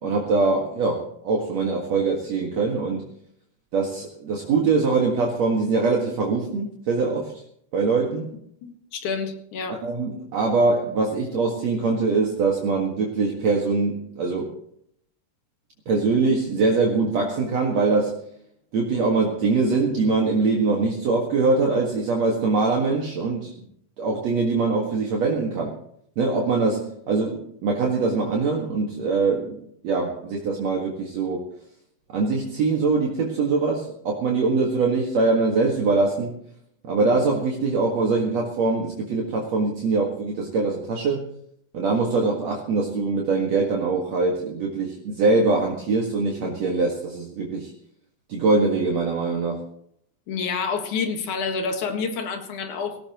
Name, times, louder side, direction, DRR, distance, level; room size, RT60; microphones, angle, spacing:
voice 1, 0.0-3.0 3.7-7.4 7.7-8.3 9.7-14.5 15.9-18.2 18.7-23.5 24.0-25.7 26.2-29.6 29.8-31.4 32.1-36.4 36.8-41.3 41.7-47.7 48.3-49.6, right 3 dB, 60° right, -1 dB, 2.9 m, -23 dB
voice 2, 8.6-9.8 50.3-53.0, left 5 dB, 70° left, 5 dB, 3.1 m, -28 dB
18.5 x 17.5 x 3.0 m, 0.70 s
omnidirectional pair, 3.6 m